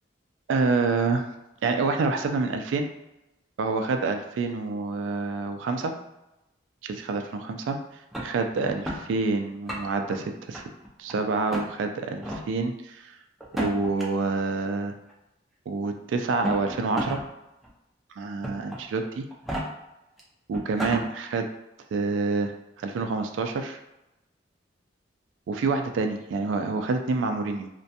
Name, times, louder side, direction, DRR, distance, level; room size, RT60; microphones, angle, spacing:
voice 1, 0.5-1.3 1.6-2.9 3.6-5.9 6.8-7.8 8.2-10.6 11.0-13.2 13.6-14.9 15.7-17.2 18.2-19.2 20.5-21.5 21.9-22.5 22.8-23.8 25.5-27.7, right 3 dB, 85° right, 6 dB, 0.3 m, -27 dB
sound 1, 8.1-9.0 9.5-10.1 10.5-11.1 11.5-11.7 12.2-12.4 13.4-14.0 15.1-15.2 16.2-17.2 17.6-17.7 18.4-18.8 19.3-19.6 20.2-20.3 20.5-21.0, equal, ahead, 0.3 m, -31 dB
2.4 x 2.2 x 2.7 m, 0.93 s
head